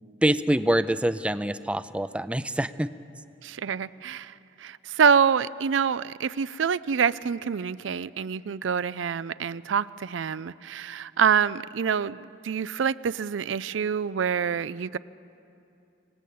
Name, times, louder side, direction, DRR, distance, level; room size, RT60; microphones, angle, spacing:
voice 1, 0.2-2.9, right 1 dB, 5° right, 13 dB, 0.4 m, -25 dB
voice 2, 3.4-15.0, right 7 dB, 85° right, 16 dB, 0.4 m, -26 dB
26.5 x 18.0 x 8.5 m, 2.7 s
head